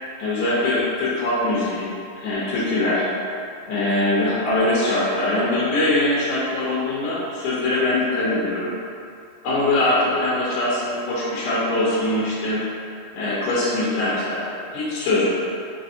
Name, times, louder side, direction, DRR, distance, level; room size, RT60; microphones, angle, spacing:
voice 1, 0.2-3.1 3.7-8.7 9.4-12.6 13.1-14.4 14.7-15.4, left 2 dB, 75° left, -7 dB, 2.0 m, -22 dB
6.1 x 3.2 x 2.7 m, 2.5 s
omnidirectional pair, 4.1 m